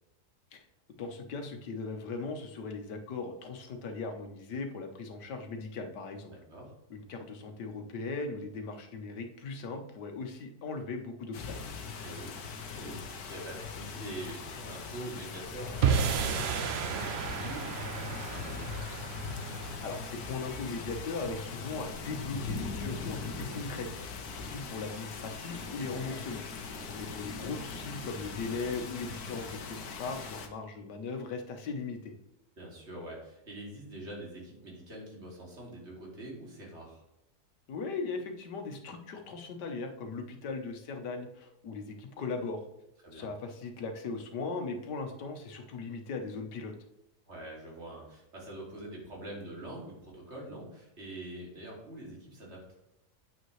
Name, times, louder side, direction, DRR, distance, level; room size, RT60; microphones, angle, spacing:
voice 1, 1.0-6.3 6.9-11.6 19.8-23.9 24.3-26.4 26.9-32.1 37.7-42.6 43.1-46.7, left 4 dB, 90° left, 5 dB, 1.7 m, -38 dB
voice 2, 6.3-6.7 12.0-18.8 26.7-27.3 32.6-37.0 43.0-43.3 47.3-52.6, right 1 dB, 40° right, -3 dB, 2.9 m, -45 dB
sound 1, 11.3-30.5, left 5 dB, 70° left, 1.5 m, -40 dB
sound 2, 15.8-22.2, right 7 dB, 60° right, 0.6 m, -33 dB
9.3 x 7.6 x 3.2 m, 0.85 s
omnidirectional pair, 1.8 m